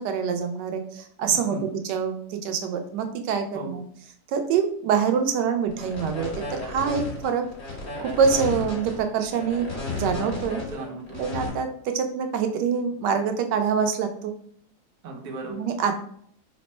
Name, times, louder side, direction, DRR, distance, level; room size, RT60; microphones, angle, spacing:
voice 1, 0.0-3.8 4.3-7.4 8.0-9.7 9.9-10.6 11.2-14.3 15.5-16.0, right 6 dB, 90° right, 6 dB, 1.2 m, -25 dB
voice 2, 1.3-1.7 3.5-3.8 10.6-11.3 15.0-15.6, right 2 dB, 70° right, 0 dB, 1.3 m, -37 dB
sound 1, 5.7-11.5, left 3 dB, 40° left, 1.8 m, -33 dB
3.4 x 2.1 x 4.1 m, 0.64 s
omnidirectional pair, 1.8 m